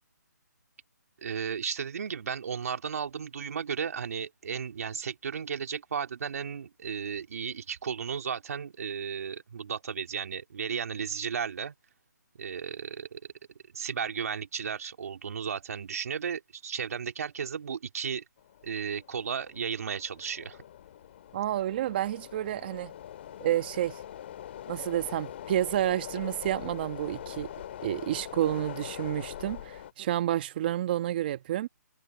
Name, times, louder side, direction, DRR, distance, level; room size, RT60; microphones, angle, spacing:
voice 1, 1.2-11.7 12.4-13.2 13.7-18.2 18.6-20.6, right 7 dB, 55° right, 2.9 m, -34 dB
sound 1, 18.4-29.9, left 11 dB, 40° left, 2.3 m, -43 dB
voice 2, 21.3-22.9 23.4-24.0 24.7-27.5 27.8-31.7, right 12 dB, 30° right, 1.5 m, -30 dB
hypercardioid pair, 160°, 10 cm